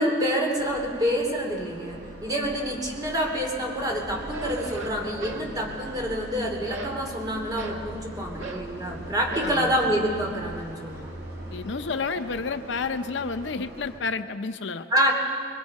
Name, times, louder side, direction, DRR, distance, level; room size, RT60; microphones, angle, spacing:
voice 1, 0.0-11.1 14.9-15.1, equal, 20° right, 0 dB, 2.9 m, -27 dB
sound 1, 0.6-14.0, equal, 65° right, 4.1 m, -41 dB
sound 2, 4.3-5.5 5.8-6.3 6.7-7.9 8.4-8.7 9.3-9.6, right 2 dB, 85° right, 1.6 m, -37 dB
voice 2, 9.4-9.8 11.5-14.9, left 4 dB, 70° left, 9 dB, 0.7 m, -30 dB
23.0 x 22.5 x 5.4 m, 2.3 s
head